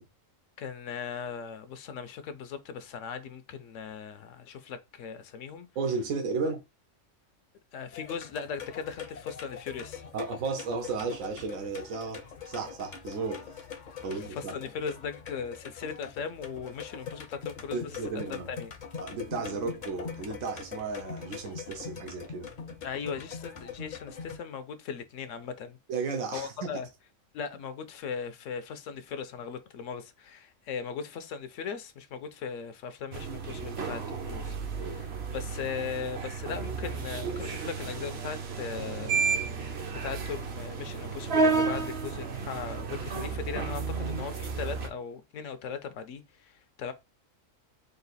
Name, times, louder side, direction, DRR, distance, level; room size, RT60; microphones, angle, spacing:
voice 1, 0.6-5.7 7.7-10.0 14.0-18.0 18.3-18.7 22.8-25.8 26.3-26.9 27.3-39.3 39.6-46.9, left 6 dB, 75° left, 0.9 m, -38 dB
voice 2, 5.8-6.6 10.1-13.6 14.0-14.5 17.7-18.5 19.0-22.5 25.9-26.7 34.8-35.2, right 4 dB, 80° right, 1.1 m, -34 dB
sound 1, 7.9-24.4, left 6 dB, 50° left, 0.6 m, -42 dB
sound 2, 33.1-44.9, right 4 dB, 55° right, 1.0 m, -32 dB
3.9 x 2.4 x 4.0 m
omnidirectional pair, 1.4 m